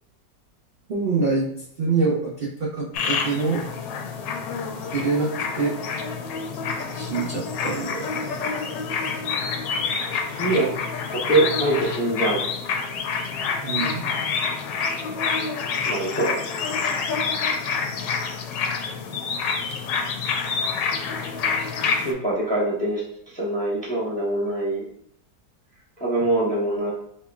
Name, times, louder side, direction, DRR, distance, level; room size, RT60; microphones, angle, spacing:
voice 1, 0.9-1.5 1.8-3.6 4.9-5.7 6.9-8.4 13.6-14.1, right 4 dB, 75° right, -4 dB, 0.5 m, -25 dB
sound 1, 2.9-22.1, left 5 dB, 85° left, 1.2 m, -27 dB
voice 2, 10.3-10.7 11.1-12.4 15.8-16.3 21.9-23.0 23.3-24.8 26.0-26.9, right 2 dB, 10° left, -5 dB, 0.5 m, -23 dB
4.1 x 3.0 x 2.4 m, 0.70 s
omnidirectional pair, 1.9 m